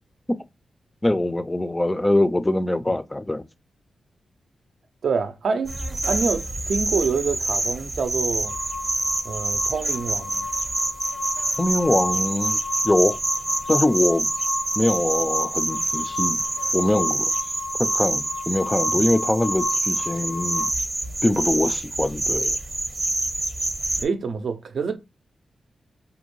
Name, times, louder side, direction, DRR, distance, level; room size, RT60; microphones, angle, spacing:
voice 1, 1.0-3.4 11.6-12.6 12.8-13.2 13.7-14.3 14.8-16.4 16.7-17.3 17.8-20.7 21.2-22.6, left 1 dB, 20° left, 0.3 m, -23 dB
voice 2, 5.0-5.7 6.0-8.5 9.2-10.5 24.0-25.0, right 5 dB, 75° right, 0.4 m, -26 dB
sound 1, 5.6-24.0, right 2 dB, 30° right, 0.6 m, -26 dB
sound 2, 8.4-20.7, left 4 dB, 80° left, 0.4 m, -33 dB
2.5 x 2.1 x 3.0 m
cardioid pair, 50°, 0 cm